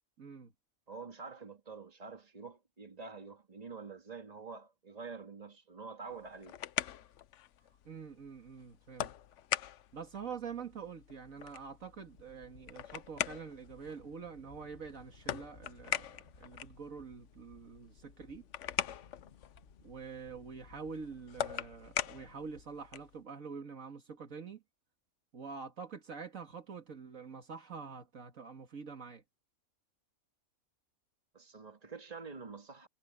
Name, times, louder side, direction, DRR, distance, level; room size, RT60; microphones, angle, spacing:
voice 1, 0.2-0.5 7.9-9.1 9.9-18.4 19.8-24.6 25.3-29.2, right 5 dB, 65° right, 2.2 m, -46 dB
voice 2, 0.9-6.6 31.3-32.9, right 4 dB, 25° right, 2.3 m, -47 dB
sound 1, 6.1-23.2, left 11 dB, 65° left, 0.9 m, -42 dB
sound 2, 12.1-22.6, left 4 dB, 45° left, 1.7 m, -61 dB
omnidirectional pair, 1.5 m